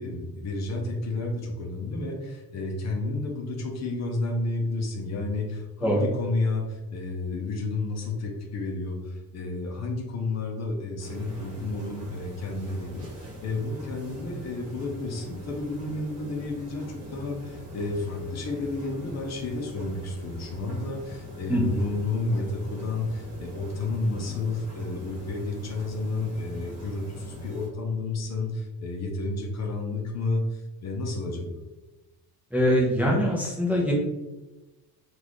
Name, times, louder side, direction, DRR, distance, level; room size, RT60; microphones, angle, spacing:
voice 1, 0.0-31.6, left 2 dB, 45° left, 1 dB, 0.6 m, -31 dB
sound 1, 11.0-27.7, equal, 40° right, 1.2 m, -42 dB
voice 2, 21.5-21.8 32.5-33.9, equal, 5° right, -4 dB, 0.6 m, -23 dB
3.8 x 2.5 x 3.0 m, 1.1 s
cardioid pair, 150°, 37 cm